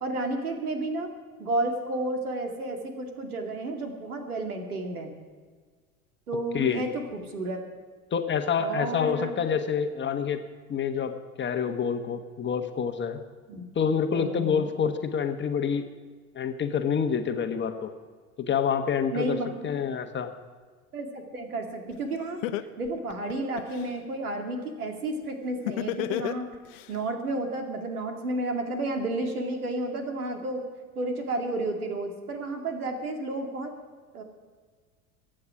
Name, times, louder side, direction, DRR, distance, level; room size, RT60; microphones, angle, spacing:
voice 1, 0.0-1.1 1.4-5.1 6.3-7.6 8.6-9.4 13.5-13.6 14.1-14.7 19.1-19.7 20.9-22.4 22.8-26.5 26.9-30.6 31.0-33.7 34.1-34.2, right 2 dB, 80° right, 3 dB, 2.4 m, -31 dB
voice 2, 8.1-13.2 13.7-15.9 16.3-17.9 18.4-20.3, left 7 dB, 25° left, 7 dB, 1.3 m, -27 dB
Laughter, 21.9-22.0 22.4-23.9 25.7-26.9, left 13 dB, 60° left, 1.0 m, -30 dB
23.5 x 8.9 x 5.0 m, 1.5 s
figure-of-eight pair, 80°, 44 cm